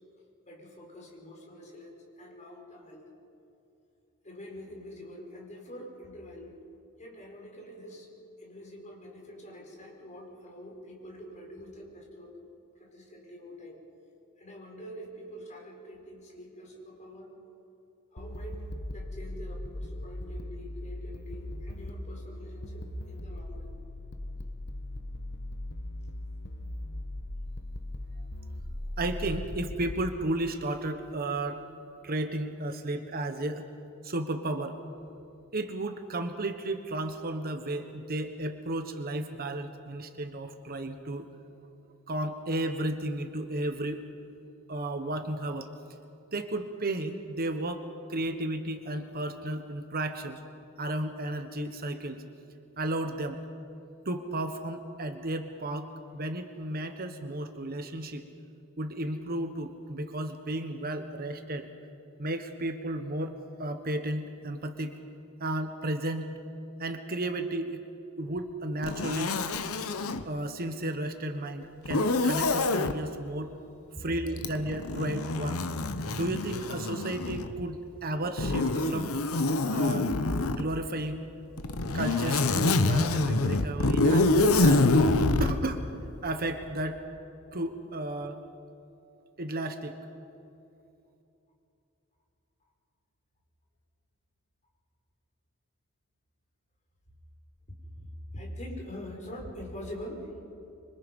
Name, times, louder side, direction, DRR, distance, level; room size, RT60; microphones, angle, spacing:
voice 1, 0.5-3.1 4.2-6.6 7.0-8.1 8.4-12.4 12.7-13.8 14.4-17.4 18.1-23.7 73.9-74.1 98.0-100.3, equal, 35° left, -1 dB, 4.9 m, -45 dB
sound 1, 18.2-30.1, left 1 dB, 55° left, 1.1 m, -39 dB
voice 2, 29.0-31.6 32.0-33.6 34.0-34.8 35.5-41.3 42.1-44.0 44.7-45.7 46.3-50.4 50.8-52.2 52.8-53.4 54.0-58.2 58.8-61.7 62.2-64.9 65.4-66.3 66.8-67.8 68.2-69.4 70.2-73.5 74.0-75.6 76.1-79.1 79.7-80.1 80.5-81.3 81.9-84.9 85.4-85.9 86.2-87.0 87.5-88.4 89.4-90.0, right 1 dB, 45° right, 7 dB, 1.3 m, -33 dB
Zipper (clothing), 68.8-70.2 71.8-72.9 74.4-77.6 78.4-80.6 81.6-85.6, left 2 dB, 85° left, 1.0 m, -26 dB
26.5 x 24.5 x 5.4 m, 2.8 s
head